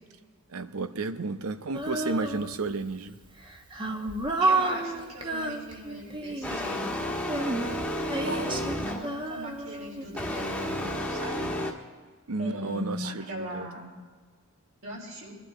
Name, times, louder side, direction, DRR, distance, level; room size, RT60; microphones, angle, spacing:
voice 1, 0.5-3.2 12.3-13.7, right 3 dB, 90° right, 11 dB, 0.8 m, -32 dB
Female singing, 1.7-2.8 3.4-6.6 7.2-10.4, right 2 dB, 25° right, 1.1 m, -31 dB
voice 2, 4.4-7.1 8.3-11.5 12.4-13.9 14.8-15.4, equal, 65° right, -3 dB, 4.2 m, -39 dB
sound 1, 6.4-9.2 10.1-11.7, left 1 dB, 5° left, 1.4 m, -32 dB
22.0 x 12.0 x 3.8 m, 1.5 s
head